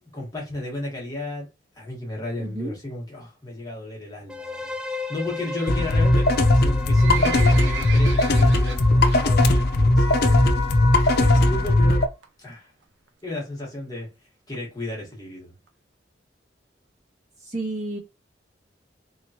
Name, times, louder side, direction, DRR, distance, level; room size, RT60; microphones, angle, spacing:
voice 1, 0.0-1.5 1.7-6.3 6.5-10.5 11.0-12.1 12.4-12.7 13.2-14.1 14.5-15.5, left 2 dB, 20° left, 1.4 m, -34 dB
voice 2, 2.4-2.7 17.4-18.0, right 2 dB, 40° right, 1.7 m, -31 dB
sound 1, 4.3-12.1, left 3 dB, 5° right, 0.4 m, -37 dB
sound 2, 5.7-12.1, left 1 dB, 55° left, 0.6 m, -18 dB
Livestock farm animals working animals, 6.6-9.2 9.6-9.9 10.2-10.3 10.9-11.0 11.3-11.4 11.6-11.7 12.2-12.5 13.1-13.2 13.4-13.5 13.7-13.8 14.0-14.1 14.5-14.6 15.1-15.2 15.7-15.8, right 7 dB, 90° right, 0.6 m, -34 dB
3.7 x 3.1 x 2.8 m
head